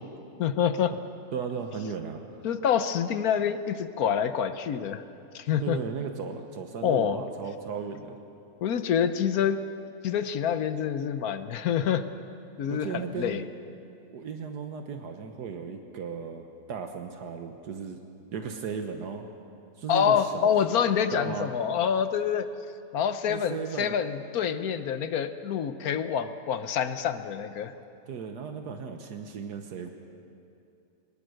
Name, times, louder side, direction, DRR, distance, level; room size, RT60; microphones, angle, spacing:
voice 1, 0.4-0.9 2.4-5.0 5.3-5.8 6.8-7.2 8.6-9.6 10.0-12.0 12.6-13.4 19.9-22.5 22.9-27.7, left 8 dB, 65° left, 11 dB, 1.3 m, -27 dB
voice 2, 1.3-2.4 5.6-8.2 12.7-13.4 14.1-18.0 18.3-19.3 19.8-20.5 21.1-21.5 23.2-24.0 28.1-29.9, right 6 dB, 75° right, 5 dB, 1.6 m, -36 dB
22.0 x 19.5 x 6.4 m, 2.6 s
omnidirectional pair, 1.7 m